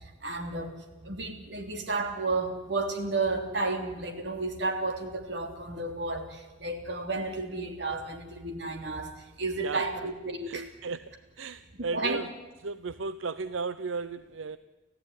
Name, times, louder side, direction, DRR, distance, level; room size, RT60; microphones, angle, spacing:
voice 1, 0.2-0.8 1.0-9.1 9.4-10.6 11.9-12.2, right 3 dB, 60° right, 5 dB, 3.3 m, -32 dB
voice 2, 9.6-10.1 10.5-11.0 11.4-12.3 12.6-14.6, right 4 dB, 85° right, 14 dB, 0.7 m, -35 dB
30.0 x 14.5 x 9.9 m, 1.2 s
head